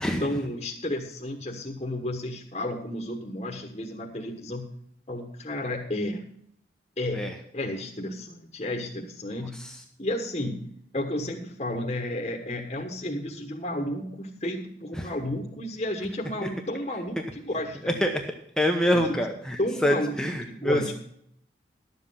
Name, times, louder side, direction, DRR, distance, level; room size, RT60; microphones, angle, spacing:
voice 1, 0.2-4.7 5.1-6.2 7.0-9.6 10.0-18.0 18.9-19.2 19.6-20.2 20.5-20.9, left 1 dB, 35° left, 1 dB, 1.3 m, -32 dB
voice 2, 18.6-20.8, equal, 5° left, 3 dB, 0.9 m, -25 dB
12.0 x 7.7 x 5.6 m, 0.69 s
head